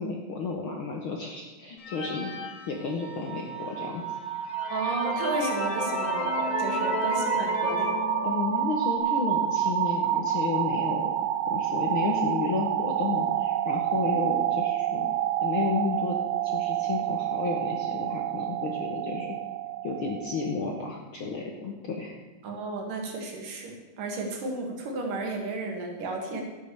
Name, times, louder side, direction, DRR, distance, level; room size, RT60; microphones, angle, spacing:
voice 1, 0.0-2.3 2.7-4.0 8.2-11.1 11.5-15.1 15.4-16.2 16.4-19.4 19.8-22.2, left 4 dB, 75° left, 1 dB, 1.2 m, -32 dB
sound 1, 1.8-3.4 4.0-4.1 4.4-9.0, left 4 dB, 60° left, 1.3 m, -33 dB
sound 2, 2.9-20.8, right 11 dB, 90° right, 1.5 m, -29 dB
voice 2, 4.7-7.9 14.1-14.3 22.4-26.4, right 3 dB, 70° right, 2 dB, 3.5 m, -33 dB
11.5 x 9.4 x 6.8 m, 1.2 s
omnidirectional pair, 4.1 m